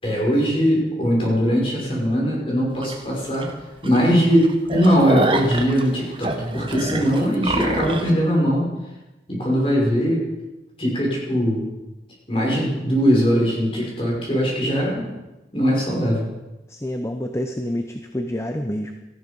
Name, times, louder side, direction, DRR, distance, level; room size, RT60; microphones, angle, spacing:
voice 1, 0.0-3.5 3.8-8.7 9.3-10.3 10.8-11.7 12.3-15.1 15.5-16.2, equal, 30° left, -3 dB, 6.0 m, -20 dB
sound 1, 2.8-2.9 3.4-3.5 3.8-4.0 4.3-8.1, right 2 dB, 30° right, 1.4 m, -25 dB
voice 2, 16.7-18.9, left 1 dB, 15° left, 5 dB, 0.8 m, -28 dB
18.0 x 13.5 x 5.4 m, 1.1 s
head